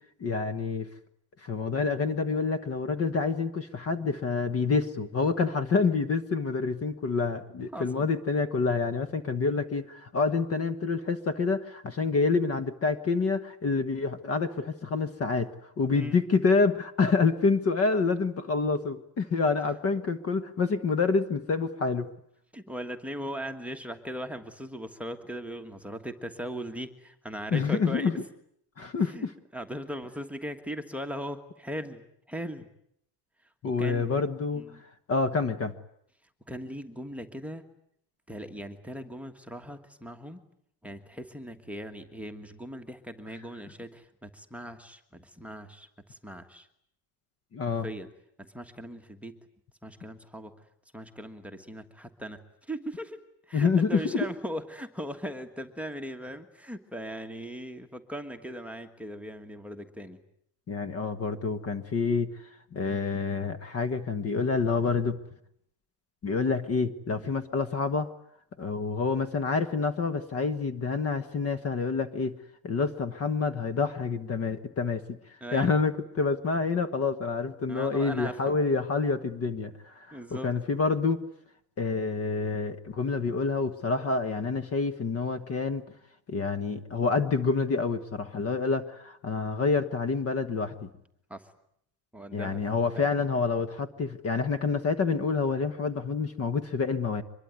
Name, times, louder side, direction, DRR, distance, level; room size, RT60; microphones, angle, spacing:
voice 1, 0.2-0.9 1.4-15.5 15.8-22.1 27.5-28.1 28.8-29.3 33.6-34.7 35.1-35.7 47.5-47.9 53.5-54.3 60.7-62.3 62.7-65.2 66.2-68.1 68.6-72.4 72.6-75.2 75.5-81.2 81.8-85.8 86.3-90.9 92.3-97.2, left 4 dB, 30° left, 12 dB, 1.3 m, -27 dB
voice 2, 7.7-8.1 15.9-16.2 22.5-28.1 29.1-29.3 29.5-32.0 32.3-32.7 33.8-34.2 34.5-34.8 36.5-37.6 38.3-40.4 40.8-46.7 47.6-48.1 48.4-49.4 49.8-50.5 50.9-52.4 52.7-60.2 75.4-75.7 77.7-78.6 80.1-80.5 91.3-91.5 92.1-92.6 92.9-93.1, equal, 5° right, 8 dB, 1.5 m, -39 dB
25.0 x 22.0 x 9.5 m, 0.71 s
cardioid pair, 170°, 44 cm